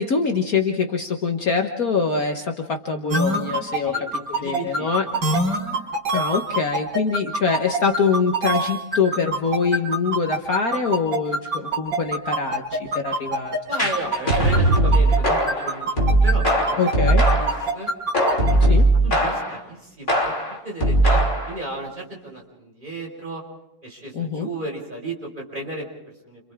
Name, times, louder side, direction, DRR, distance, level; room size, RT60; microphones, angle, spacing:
voice 1, 0.0-3.9 4.4-5.0 6.1-13.5 16.8-17.2 18.6-18.9 24.1-24.5, left 5 dB, 50° left, 3 dB, 1.7 m, -24 dB
sound 1, 3.1-15.2 15.5-18.5, right 2 dB, 65° right, 5.5 m, -24 dB
voice 2, 4.4-5.3 13.7-16.8 17.3-17.9 18.5-18.6 19.0-20.2 20.6-21.2 21.5-23.4 23.8-26.4, right 2 dB, 25° right, -1 dB, 5.7 m, -34 dB
sound 2, 13.8-17.7 18.1-19.6 20.1-21.6, right 1 dB, 25° left, 3.6 m, -19 dB
30.0 x 27.5 x 3.7 m, 0.86 s
omnidirectional pair, 2.0 m